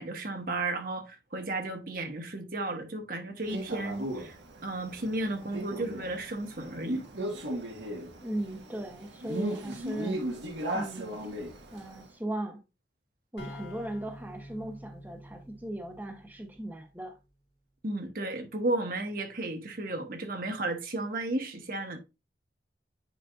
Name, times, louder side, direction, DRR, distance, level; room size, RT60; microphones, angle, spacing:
voice 1, 0.0-7.0 17.8-22.0, right 2 dB, 50° right, 1.2 m, -34 dB
Male speech man speaking, 3.5-12.0, right 1 dB, 85° right, 1.6 m, -37 dB
voice 2, 8.2-10.2 10.7-11.2 11.7-12.6 13.3-17.1, right 1 dB, 10° right, 0.9 m, -37 dB
sound 1, 13.4-17.0, equal, 80° left, 2.0 m, -47 dB
9.4 x 5.0 x 2.5 m
head